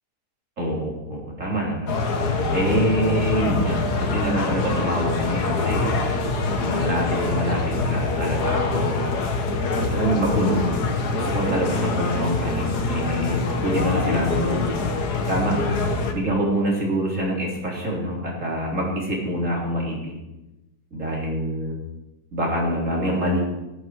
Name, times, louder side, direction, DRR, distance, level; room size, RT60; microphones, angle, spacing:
voice 1, 0.6-2.0 2.5-6.0 6.6-9.1 9.9-10.8 11.1-14.7 15.3-15.7 16.1-20.1 20.9-21.8 22.3-23.4, right 1 dB, 50° right, -2 dB, 4.1 m, -25 dB
sound 1, 1.9-16.1, left 3 dB, 75° left, 1.9 m, -24 dB
17.5 x 9.5 x 4.7 m, 0.98 s
omnidirectional pair, 1.7 m